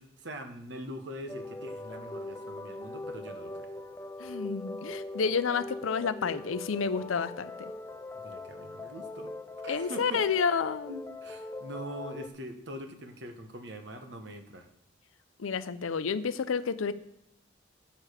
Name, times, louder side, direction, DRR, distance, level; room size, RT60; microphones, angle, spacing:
voice 1, 0.0-3.7 8.1-9.3 9.6-10.3 10.9-14.7, equal, 55° right, 6 dB, 1.1 m, -43 dB
sound 1, 1.3-12.3, left 2 dB, 10° left, 0.3 m, -41 dB
voice 2, 4.2-7.7 9.7-10.9 15.4-16.9, left 5 dB, 80° left, 13 dB, 0.5 m, -30 dB
10.0 x 6.5 x 5.0 m, 0.85 s
head